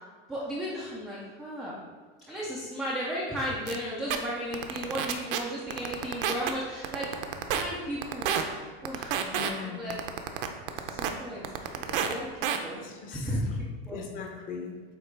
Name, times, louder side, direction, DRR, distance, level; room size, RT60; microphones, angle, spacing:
voice 1, 0.3-1.8 2.3-7.1 7.5-10.0 10.8-12.3 12.6-12.8 13.1-14.0, equal, ahead, -8 dB, 0.3 m, -35 dB
sound 1, 3.7-3.8 4.1-4.2 4.5-5.4 5.7-6.5 6.8-7.6 8.0-8.4 8.9-9.5 9.9-11.1 11.4-12.1 12.4-12.6, right 9 dB, 60° right, 0.7 m, -28 dB
voice 2, 9.3-9.9 12.8-13.5 13.9-15.0, left 5 dB, 30° left, 1 dB, 0.7 m, -40 dB
7.9 x 2.9 x 4.5 m, 1.5 s
supercardioid pair, 175°, 30 cm